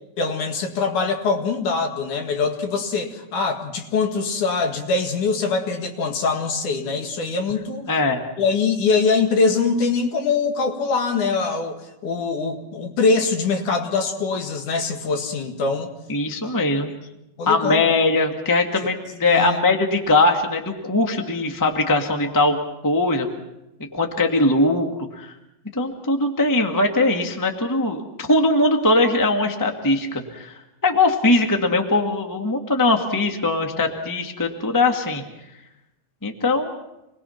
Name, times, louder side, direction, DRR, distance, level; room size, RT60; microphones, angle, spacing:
voice 1, 0.2-7.9 8.4-15.9 16.4-16.5 17.4-17.8 18.8-18.9 19.3-19.6, left 4 dB, 60° left, 4 dB, 3.1 m, -23 dB
voice 2, 7.9-8.2 16.1-16.9 17.4-22.6 22.8-23.3 23.9-24.9 25.2-25.3 25.7-28.0 28.3-30.5 30.8-35.2 36.2-36.7, left 2 dB, 15° left, 3 dB, 0.7 m, -20 dB
27.5 x 21.0 x 5.9 m, 0.92 s
omnidirectional pair, 4.3 m